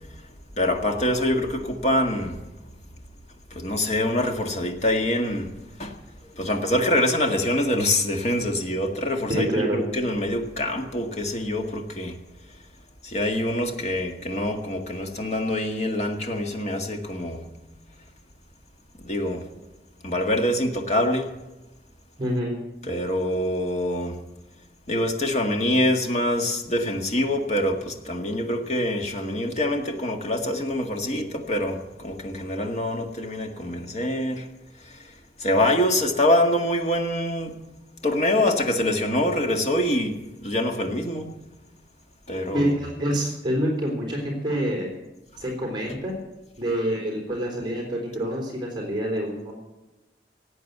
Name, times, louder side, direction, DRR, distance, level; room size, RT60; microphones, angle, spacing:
voice 1, 0.6-2.4 3.5-5.5 5.8-5.9 6.4-12.2 13.0-17.5 19.0-19.5 20.0-21.3 22.9-24.2 24.9-34.4 34.8-35.1 35.4-37.6 38.0-41.3 42.3-42.7, left 1 dB, 40° left, 3 dB, 1.8 m, -25 dB
voice 2, 9.3-9.8 22.2-22.6 42.5-44.9 45.4-46.2 46.6-49.5, equal, 25° right, 0 dB, 3.7 m, -26 dB
17.5 x 8.4 x 8.1 m, 1.0 s
head